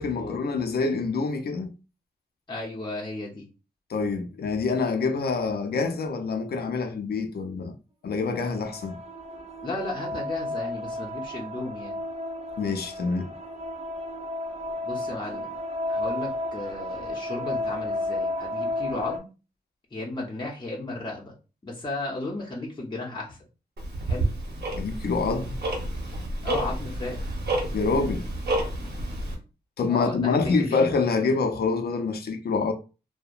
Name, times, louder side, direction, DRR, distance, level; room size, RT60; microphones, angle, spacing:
voice 1, 0.0-1.7 3.9-7.8 8.0-9.0 12.6-13.3 24.7-25.6 27.7-28.3 29.8-32.7, left 4 dB, 70° left, 0.5 m, -26 dB
voice 2, 2.5-3.5 9.6-12.0 14.8-15.5 15.9-19.3 19.9-21.3 21.6-23.4 24.1-24.3 26.4-27.3 29.9-30.9, left 2 dB, 25° left, 0.7 m, -34 dB
sound 1, 8.3-19.2, left 1 dB, 40° right, 0.4 m, -33 dB
Tick-tock, 23.8-29.3, right 1 dB, 85° right, 0.8 m, -30 dB
2.8 x 2.0 x 2.4 m
wide cardioid pair, 125°, 17 cm